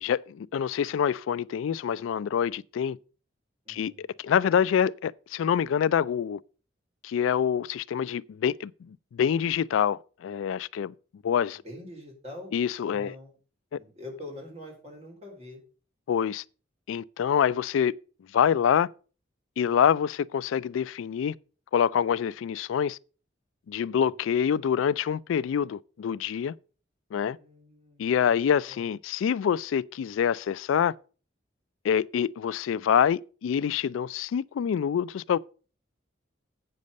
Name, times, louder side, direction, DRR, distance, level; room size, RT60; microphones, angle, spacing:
voice 1, 0.0-3.0 3.7-6.4 7.0-10.9 11.2-11.6 12.5-13.1 13.7-13.8 16.1-16.4 16.9-17.9 18.3-18.9 19.6-21.3 21.7-23.0 23.7-26.6 27.1-27.4 28.0-30.9 31.8-35.4, left 8 dB, 85° left, 0.3 m, -26 dB
voice 2, 3.7-4.1 11.6-12.5 12.9-13.4 13.7-15.6 27.2-28.9, left 1 dB, 35° right, 3.6 m, -45 dB
8.4 x 6.6 x 5.2 m
head